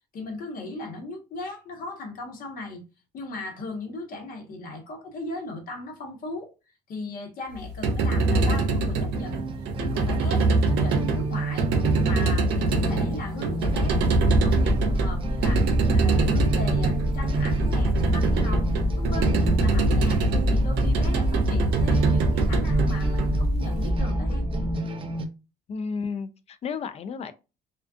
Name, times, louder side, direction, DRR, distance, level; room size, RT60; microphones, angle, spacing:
voice 1, 0.1-2.8 3.1-6.5 6.9-9.5 9.8-11.7 12.0-20.2 20.5-24.5, left 2 dB, 55° left, 1.0 m, -37 dB
sound 1, 7.6-23.8, right 3 dB, 85° right, 0.6 m, -24 dB
sound 2, 9.2-25.2, right 4 dB, 30° right, 0.5 m, -31 dB
sound 3, 13.6-24.7, equal, 20° left, 0.9 m, -26 dB
voice 2, 25.7-27.3, left 5 dB, 40° left, 0.4 m, -32 dB
2.4 x 2.3 x 2.4 m
cardioid pair, 110°, 17 cm